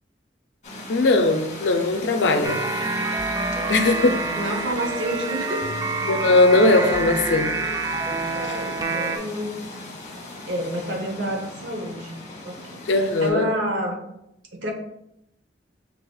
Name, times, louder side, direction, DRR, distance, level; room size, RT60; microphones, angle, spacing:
sound 1, 0.6-13.3, left 2 dB, 40° left, 0.9 m, -37 dB
voice 1, 0.9-2.6 3.7-4.2 6.0-7.5 12.9-13.5, left 2 dB, 75° left, 6 dB, 0.4 m, -19 dB
sound 2, 2.4-9.2, right 3 dB, 20° right, 0.3 m, -27 dB
voice 2, 4.4-5.7 6.8-8.0 8.3-9.8 10.5-12.2 12.4-12.8 13.2-14.1 14.5-14.7, equal, 80° right, 2 dB, 0.9 m, -29 dB
6.1 x 2.8 x 2.3 m, 0.82 s
head